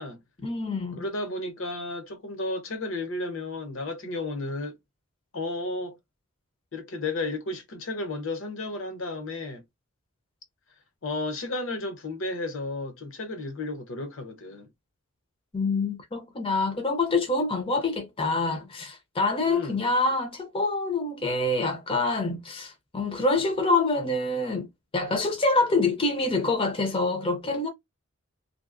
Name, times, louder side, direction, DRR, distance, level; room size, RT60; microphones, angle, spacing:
voice 1, 0.4-1.0 15.5-24.7 24.9-27.7, left 3 dB, 25° left, 0.5 m, -26 dB
voice 2, 1.0-4.7 5.3-6.0 6.7-9.6 11.0-14.7 19.4-19.9, left 2 dB, 60° left, 0.8 m, -33 dB
2.8 x 2.7 x 2.5 m
head